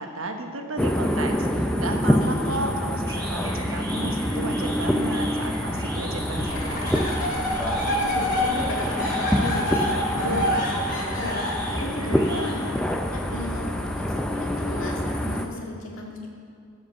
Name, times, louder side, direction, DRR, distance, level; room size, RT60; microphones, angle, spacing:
voice 1, 0.0-7.1, right 2 dB, 85° right, 4 dB, 1.2 m, -33 dB
sound 1, 0.8-15.5, equal, 5° left, 0.5 m, -26 dB
voice 2, 1.9-2.6 7.7-16.3, left 2 dB, 75° left, -2 dB, 2.1 m, -35 dB
sound 2, 2.6-12.9, equal, 20° right, 2.2 m, -40 dB
sound 3, 6.5-12.4, left 1 dB, 45° left, 2.4 m, -27 dB
14.5 x 5.1 x 7.0 m, 2.4 s
head